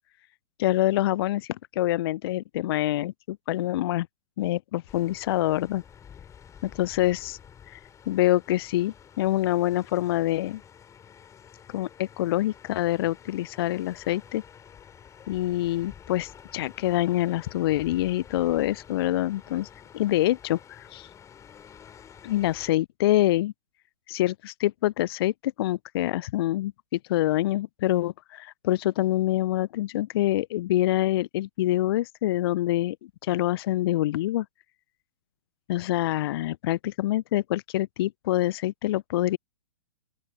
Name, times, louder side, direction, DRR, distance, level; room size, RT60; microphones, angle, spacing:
voice 1, 0.6-4.1 4.4-5.8 6.6-7.4 7.7-7.8 8.1-10.6 11.7-14.4 15.3-19.7 19.9-21.1 22.2-23.5 24.1-33.0 33.2-34.5 35.7-39.4, left 15 dB, 45° left, 0.4 m, -26 dB
sound 1, 4.9-22.7, left 8 dB, 15° left, 4.8 m, -50 dB
open air
figure-of-eight pair, 115°, 17 cm